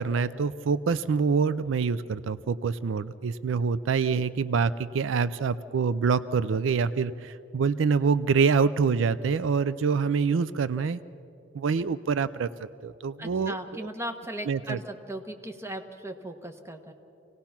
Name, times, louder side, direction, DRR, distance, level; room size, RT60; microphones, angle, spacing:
voice 1, 0.0-11.0 11.5-12.5 12.8-13.6 14.5-14.8, right 5 dB, 70° right, 15 dB, 0.4 m, -26 dB
voice 2, 13.2-16.9, right 1 dB, 15° right, 5 dB, 1.2 m, -37 dB
26.5 x 18.0 x 5.9 m, 2.8 s
head